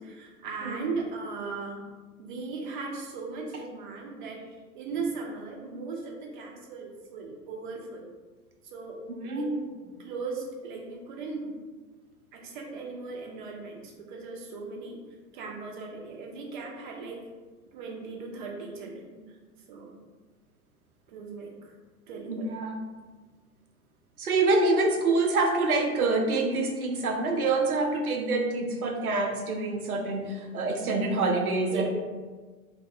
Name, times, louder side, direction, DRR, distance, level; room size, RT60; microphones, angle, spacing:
voice 1, 0.0-1.8 2.2-8.1 8.6-9.5 10.0-11.5 12.3-15.0 15.3-17.3 17.7-19.2 19.7-19.9 21.1-21.8 22.1-22.5 26.4-26.5 31.7-31.9, right 4 dB, 35° right, 1 dB, 0.5 m, -38 dB
voice 2, 9.1-9.6 22.3-22.8 24.2-31.9, right 3 dB, 85° right, 2 dB, 0.5 m, -26 dB
2.5 x 2.1 x 2.6 m, 1.4 s
figure-of-eight pair, 95°, 43 cm